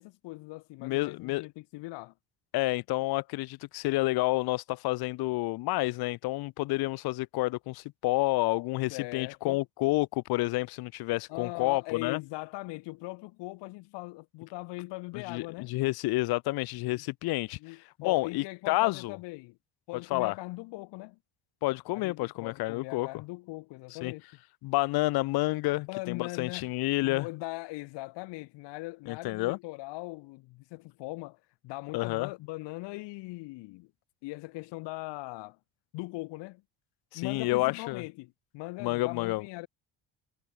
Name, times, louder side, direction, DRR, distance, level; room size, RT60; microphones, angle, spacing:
voice 1, 0.0-2.1 8.9-9.6 11.3-15.8 16.9-17.0 17.6-19.6 19.9-21.2 21.9-24.2 25.8-26.7 27.0-33.9 34.2-35.6 35.9-36.6 37.1-39.7, left 22 dB, 75° left, 1.7 m, -40 dB
voice 2, 0.8-1.4 2.5-12.2 15.1-19.2 20.1-20.3 21.6-23.1 23.9-24.1 24.6-27.3 29.1-29.6 31.9-32.3 37.1-38.0 38.8-39.4, left 20 dB, 60° left, 0.7 m, -29 dB
cardioid pair, 130°, 43 cm